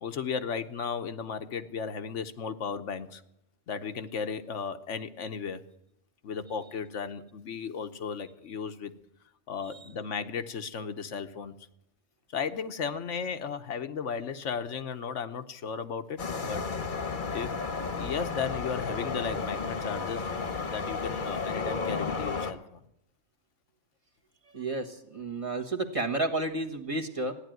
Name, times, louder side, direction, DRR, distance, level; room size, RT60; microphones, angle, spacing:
voice 1, 0.0-3.2 3.7-5.6 6.2-8.9 9.5-11.7 12.3-16.6 17.3-17.5 17.9-20.2 20.7-22.8, left 6 dB, 75° left, 9 dB, 1.2 m, -35 dB
sound 1, 16.2-22.5, left 4 dB, 45° left, 1.2 m, -33 dB
voice 2, 24.5-27.3, right 2 dB, 25° right, 3 dB, 1.4 m, -31 dB
15.0 x 10.0 x 9.1 m, 0.80 s
omnidirectional pair, 1.3 m